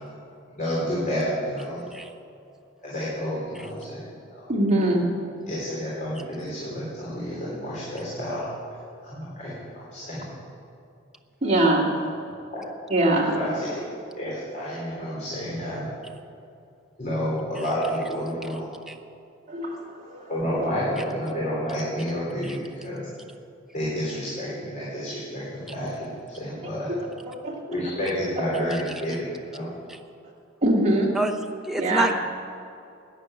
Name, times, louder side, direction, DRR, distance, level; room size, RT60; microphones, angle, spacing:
voice 1, 0.5-1.8 2.8-4.4 5.5-8.5 9.0-10.3 12.5-12.6 13.3-13.8 14.2-15.9 17.0-18.7 20.3-23.1 23.7-26.9 27.7-29.7, equal, 40° left, -8 dB, 3.7 m, -30 dB
voice 2, 4.5-5.0 11.4-11.9 12.9-13.3 19.5-20.3 27.3-27.6 30.6-31.1 31.8-32.1, right 1 dB, 35° right, -3 dB, 2.5 m, -22 dB
voice 3, 31.6-32.2, right 1 dB, ahead, 2 dB, 0.8 m, -27 dB
11.5 x 9.8 x 9.0 m, 2.5 s
head